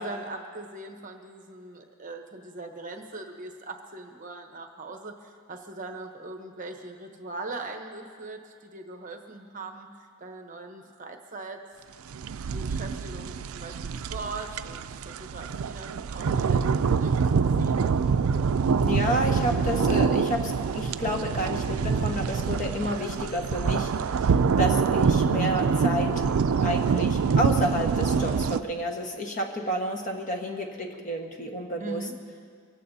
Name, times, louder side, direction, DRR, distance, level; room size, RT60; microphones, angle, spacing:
voice 1, 0.0-9.9 10.2-11.6 12.2-17.2 17.6-17.8 31.8-32.1, right 2 dB, 35° right, 4 dB, 1.0 m, -40 dB
sound 1, 12.1-28.6, right 5 dB, 75° right, 0.4 m, -25 dB
voice 2, 18.8-26.2 26.6-32.1, equal, 35° left, 2 dB, 1.4 m, -30 dB
24.0 x 16.0 x 2.8 m, 2.1 s
head